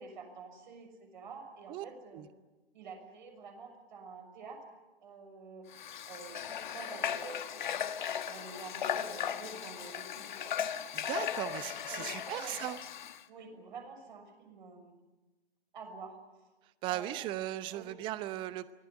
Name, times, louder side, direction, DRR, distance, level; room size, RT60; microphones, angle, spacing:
voice 1, 0.0-2.2 2.7-4.6 5.0-5.7 6.1-7.9 8.2-10.5 11.2-11.3 11.6-12.6 13.3-15.0 15.7-16.2 16.8-17.4 17.7-17.9, right 4 dB, 50° right, 4 dB, 6.3 m, -48 dB
Water / Water tap faucet, 5.7-13.2, left 9 dB, 50° left, 1.3 m, -37 dB
voice 2, 10.9-12.8 16.8-18.7, right 14 dB, 15° right, 15 dB, 0.8 m, -37 dB
24.0 x 18.5 x 9.9 m, 1.1 s
figure-of-eight pair, 130°, 31 cm